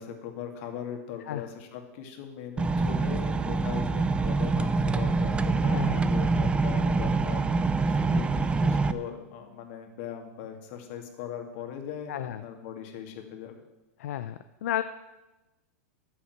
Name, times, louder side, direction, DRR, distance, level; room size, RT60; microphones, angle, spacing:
voice 1, 0.0-13.5, left 8 dB, 55° left, 5 dB, 2.3 m, -40 dB
sound 1, 2.6-8.9, right 3 dB, 15° right, 0.6 m, -25 dB
voice 2, 5.6-6.1 12.1-12.4 14.0-14.8, left 12 dB, 75° left, 11 dB, 0.6 m, -33 dB
10.5 x 7.1 x 9.4 m, 1.1 s
hypercardioid pair, 125°, 8 cm